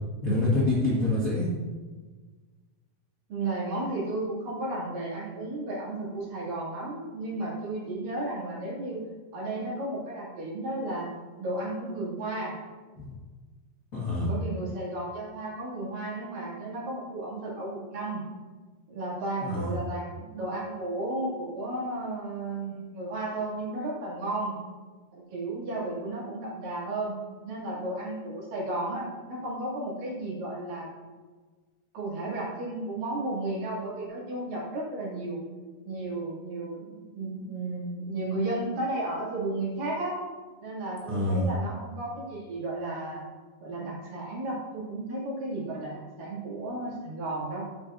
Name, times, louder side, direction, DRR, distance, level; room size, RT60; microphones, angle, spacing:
voice 1, 0.2-1.5 13.0-13.1 13.9-14.3 19.4-19.7 41.1-41.5, left 2 dB, 45° left, -7 dB, 1.1 m, -26 dB
voice 2, 3.3-9.1 9.3-11.1 11.4-12.6 14.3-18.2 18.9-24.6 25.1-27.2 27.4-30.9 31.9-35.4 35.9-40.2 40.6-43.2 43.6-45.9 46.2-47.6, right 2 dB, 60° right, -6 dB, 4.1 m, -33 dB
13.5 x 8.2 x 2.7 m, 1.4 s
omnidirectional pair, 4.6 m